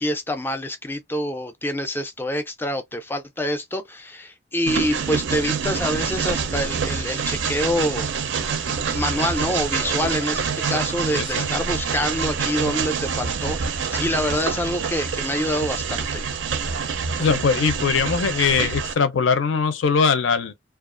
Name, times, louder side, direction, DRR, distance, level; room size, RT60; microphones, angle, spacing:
voice 1, 0.0-8.4 8.9-16.2, left 1 dB, 10° left, 0.3 m, -26 dB
Train, 4.7-18.9, right 6 dB, 65° right, 0.4 m, -26 dB
voice 2, 11.1-11.5 17.2-20.5, left 5 dB, 75° left, 0.5 m, -21 dB
2.4 x 2.3 x 2.4 m
head